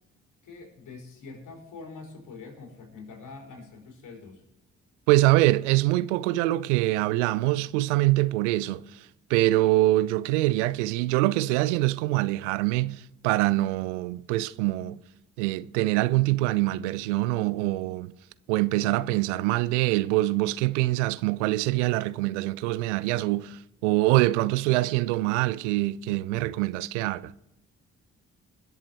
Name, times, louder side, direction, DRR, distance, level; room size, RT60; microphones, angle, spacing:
voice 1, 0.4-4.5, left 4 dB, 60° left, 4.3 m, -44 dB
voice 2, 5.1-15.0 15.4-18.1 18.5-27.3, right 18 dB, 85° right, 0.5 m, -24 dB
21.5 x 7.4 x 4.5 m
hypercardioid pair, 40°, 35 cm